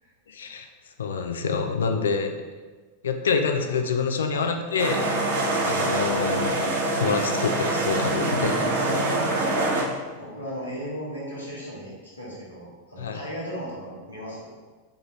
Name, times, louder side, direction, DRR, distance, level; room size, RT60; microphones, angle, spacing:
voice 1, 0.3-0.7 1.0-2.3 3.0-5.1 5.7-6.6 7.0-8.5 13.0-13.2, left 5 dB, 65° left, 5 dB, 0.4 m, -26 dB
sound 1, 4.8-9.8, right 2 dB, 55° right, 0.7 m, -25 dB
voice 2, 8.2-9.4 10.1-14.5, equal, 85° left, -8 dB, 1.0 m, -37 dB
3.8 x 3.7 x 3.0 m, 1.4 s
figure-of-eight pair, 90°, 0 cm